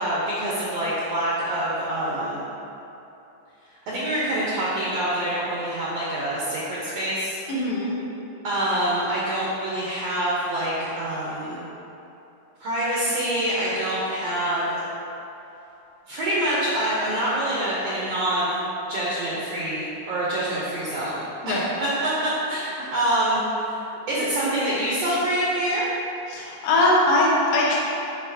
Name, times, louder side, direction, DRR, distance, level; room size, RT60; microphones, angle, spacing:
voice 1, 0.0-2.4 3.9-7.4 8.4-11.6 12.6-14.8 16.1-18.6 18.9-21.6 22.0-23.8 24.1-25.9, right 1 dB, 70° right, -7 dB, 1.6 m, -26 dB
voice 2, 7.5-8.0 21.4-21.6 26.3-27.8, left 1 dB, 75° left, -4 dB, 2.4 m, -21 dB
7.9 x 5.3 x 2.7 m, 2.9 s
omnidirectional pair, 3.8 m